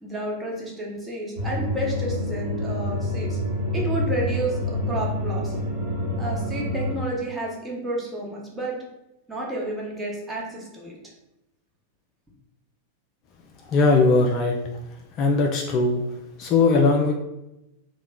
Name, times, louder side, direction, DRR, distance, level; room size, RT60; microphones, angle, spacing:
voice 1, 0.0-3.4 3.7-5.6 6.2-8.8 9.3-11.0, right 1 dB, 10° right, -4 dB, 0.9 m, -31 dB
sound 1, 1.4-6.9, equal, 30° right, 1.4 m, -27 dB
voice 2, 13.7-14.6 15.2-16.0 16.4-17.1, left 3 dB, 35° left, 1 dB, 0.4 m, -19 dB
2.9 x 2.2 x 3.4 m, 0.90 s
figure-of-eight pair, 90°, 0 cm